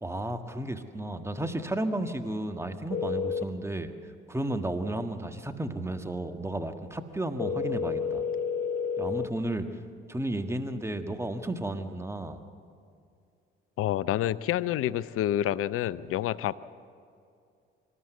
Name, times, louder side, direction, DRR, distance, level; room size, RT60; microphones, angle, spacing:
voice 1, 0.0-3.9 4.3-8.2 9.0-9.7 10.1-12.4, right 1 dB, 10° right, 7 dB, 1.7 m, -33 dB
sound 1, 2.9-3.4 7.4-9.3, left 6 dB, 30° left, 1.0 m, -30 dB
voice 2, 13.8-16.6, left 12 dB, 50° left, 18 dB, 0.7 m, -28 dB
26.0 x 13.5 x 8.1 m, 2.4 s
figure-of-eight pair, 50°, 29 cm